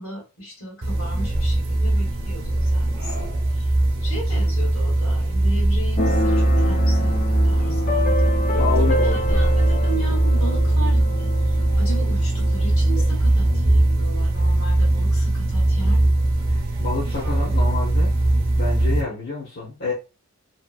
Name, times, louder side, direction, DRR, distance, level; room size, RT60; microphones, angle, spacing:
voice 1, 0.0-3.7 4.0-7.2 7.4-16.2, right 1 dB, 80° left, -1 dB, 1.3 m, -36 dB
sound 1, 0.8-19.0, right 1 dB, 45° right, 0.6 m, -20 dB
Keyboard (musical), 6.0-13.5, left 2 dB, 40° left, 0.4 m, -28 dB
voice 2, 8.5-9.4 16.8-18.1 18.6-19.9, left 4 dB, 60° left, -7 dB, 0.9 m, -28 dB
2.8 x 2.4 x 2.4 m, 0.30 s
head